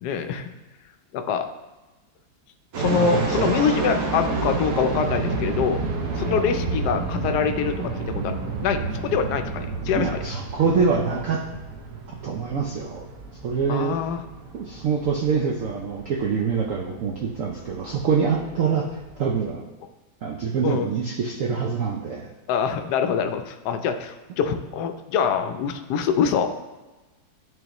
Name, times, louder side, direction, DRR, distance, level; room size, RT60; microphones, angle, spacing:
voice 1, 0.0-0.5 1.1-1.5 2.8-5.8 6.2-7.9 8.2-10.1 13.7-14.2 20.6-20.9 22.5-26.5, left 7 dB, 70° left, 7 dB, 1.0 m, -24 dB
sound 1, 2.7-19.5, right 3 dB, 60° right, 1.1 m, -30 dB
voice 2, 2.8-3.5 9.9-11.4 12.1-13.0 13.4-14.0 14.5-19.6 20.2-22.3, right 5 dB, 85° right, 0 dB, 0.7 m, -25 dB
10.5 x 3.8 x 3.0 m, 1.1 s
omnidirectional pair, 2.1 m